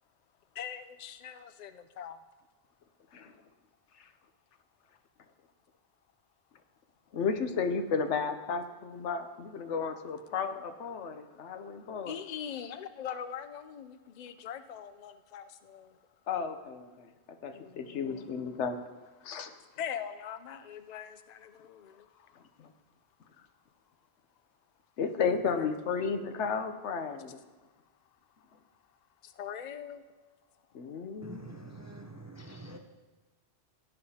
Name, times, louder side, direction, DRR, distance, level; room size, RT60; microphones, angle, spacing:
voice 1, 0.5-2.2 7.8-7.9 11.4-11.5 11.8-16.0 17.5-18.3 19.5-22.3 25.3-25.7 27.3-27.4 29.2-30.0, left 8 dB, 50° left, 10 dB, 0.5 m, -42 dB
voice 2, 7.1-12.1 16.3-17.1 17.4-18.8 19.2-19.5 25.0-27.4 30.7-31.4, left 5 dB, 90° left, 8 dB, 1.1 m, -33 dB
voice 3, 31.2-32.8, right 2 dB, 20° right, 3 dB, 0.5 m, -46 dB
16.0 x 9.8 x 2.8 m, 1.3 s
omnidirectional pair, 1.2 m